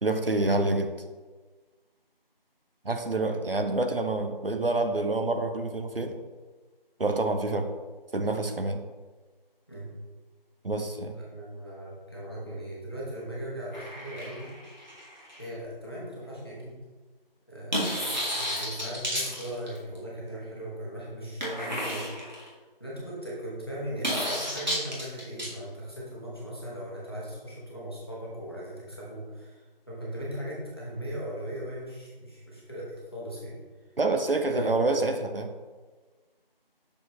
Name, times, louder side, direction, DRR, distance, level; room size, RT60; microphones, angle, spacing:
voice 1, 0.0-0.9 2.8-6.2 7.0-7.7 8.1-8.8 10.6-11.1 34.0-35.5, right 2 dB, 70° right, 6 dB, 0.7 m, -27 dB
voice 2, 11.1-14.5 15.4-16.8 17.5-22.1 22.8-29.6 29.9-33.6 34.5-34.7, equal, 25° left, -6 dB, 1.2 m, -38 dB
sound 1, 13.7-15.4 17.7-20.0 21.4-22.5 24.0-25.5, equal, 50° right, 1.9 m, -32 dB
6.4 x 5.0 x 3.1 m, 1.3 s
figure-of-eight pair, 170°, 29 cm